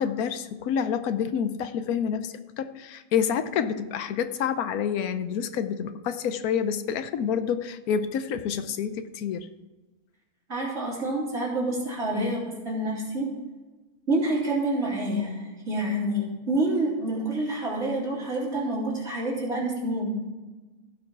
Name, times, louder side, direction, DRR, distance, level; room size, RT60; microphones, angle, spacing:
voice 1, 0.0-9.5 12.1-12.4, left 7 dB, 90° left, 11 dB, 1.2 m, -28 dB
voice 2, 10.5-13.3 14.1-20.2, right 1 dB, 50° right, -5 dB, 3.6 m, -28 dB
15.5 x 5.5 x 4.5 m, 1.2 s
omnidirectional pair, 1.5 m